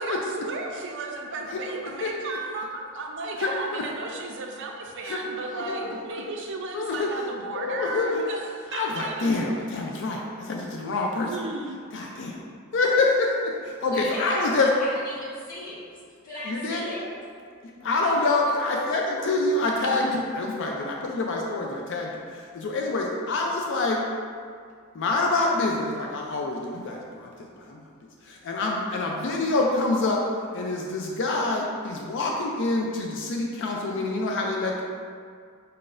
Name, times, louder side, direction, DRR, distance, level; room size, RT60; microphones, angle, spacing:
voice 1, 0.0-9.3 11.2-11.8, right 2 dB, 60° right, 1 dB, 0.5 m, -34 dB
voice 2, 1.5-2.1 3.4-3.8 5.0-6.2 6.7-7.1 7.5-8.2 8.7-11.3 11.9-12.4 12.7-14.7 16.4-17.0 17.6-24.0 24.9-27.8 28.2-30.2 30.5-34.8, left 3 dB, 60° left, 0 dB, 0.4 m, -27 dB
voice 3, 13.9-15.8 16.2-17.0 18.1-18.3 18.9-19.0, left 1 dB, 40° left, -8 dB, 1.5 m, -35 dB
5.4 x 3.9 x 2.5 m, 2.1 s
head